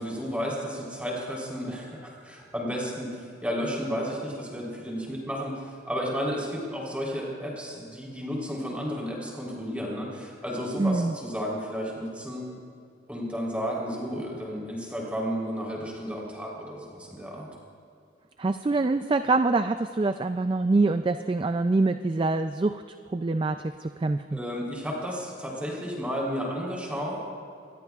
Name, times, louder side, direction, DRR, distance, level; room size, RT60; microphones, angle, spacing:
voice 1, 0.0-12.4 13.1-17.5 24.3-27.2, equal, 5° right, -3 dB, 3.6 m, -32 dB
voice 2, 10.8-11.1 18.4-22.8 23.1-24.4, right 3 dB, 25° right, 9 dB, 0.3 m, -25 dB
25.5 x 20.0 x 2.4 m, 2.4 s
head